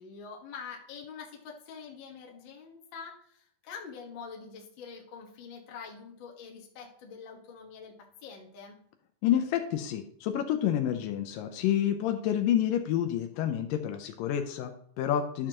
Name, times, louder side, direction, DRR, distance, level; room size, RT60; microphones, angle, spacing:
voice 1, 0.0-8.8 15.4-15.5, left 6 dB, 50° left, -1 dB, 1.5 m, -45 dB
voice 2, 9.2-15.5, left 10 dB, 80° left, 6 dB, 2.2 m, -29 dB
12.0 x 6.6 x 2.9 m, 0.67 s
omnidirectional pair, 4.1 m